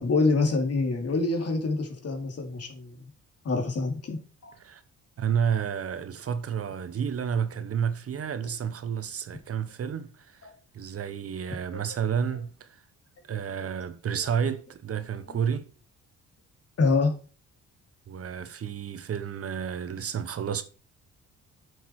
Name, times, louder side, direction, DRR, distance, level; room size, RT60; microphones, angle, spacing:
voice 1, 0.0-2.9 3.4-4.2 4.4-4.5 10.4-10.5 11.7-11.8 14.2-14.3 15.3-15.4 16.8-17.1, left 3 dB, 55° left, 2.9 m, -26 dB
voice 2, 5.2-10.5 10.7-12.8 13.3-15.7 18.1-20.6, right 7 dB, 50° right, 1.1 m, -30 dB
8.7 x 6.5 x 4.8 m
cardioid pair, 90°, 30 cm